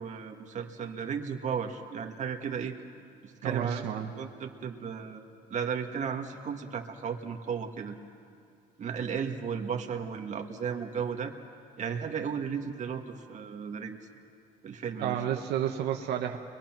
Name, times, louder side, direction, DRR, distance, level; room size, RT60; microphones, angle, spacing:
voice 1, 0.0-2.8 3.2-3.9 4.2-5.2 5.5-8.0 8.8-11.3 11.8-14.1 14.6-15.2, right 7 dB, 45° right, 3 dB, 1.9 m, -34 dB
voice 2, 3.4-4.8 13.2-13.3 15.0-16.4, right 10 dB, 80° right, 2 dB, 1.3 m, -32 dB
30.0 x 22.5 x 6.1 m, 2.4 s
cardioid pair, 110°, 17 cm